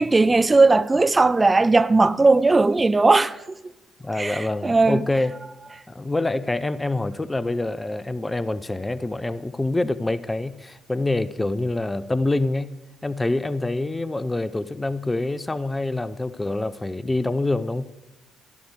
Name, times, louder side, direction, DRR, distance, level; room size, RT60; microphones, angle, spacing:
voice 1, 0.0-3.7 4.1-5.1, right 3 dB, 20° right, 0.6 m, -18 dB
voice 2, 4.0-5.3 5.9-12.8 13.0-17.8, left 2 dB, 15° left, 0.6 m, -26 dB
14.5 x 13.0 x 4.8 m
figure-of-eight pair, 45°, 0 cm